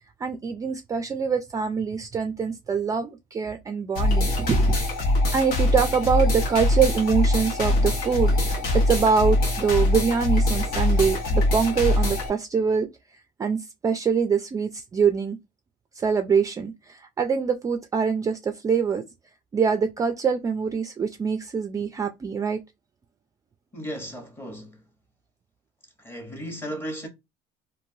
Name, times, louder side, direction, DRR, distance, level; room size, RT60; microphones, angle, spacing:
voice 1, 0.2-4.8 5.3-15.4 15.9-19.0 19.5-22.6, right 6 dB, 20° right, 0.3 m, -24 dB
sound 1, 3.9-12.3, left 1 dB, 65° left, 1.0 m, -23 dB
voice 2, 23.7-24.8 26.0-27.1, equal, 15° left, 1.0 m, -35 dB
3.1 x 2.6 x 2.7 m
cardioid pair, 115°, 16 cm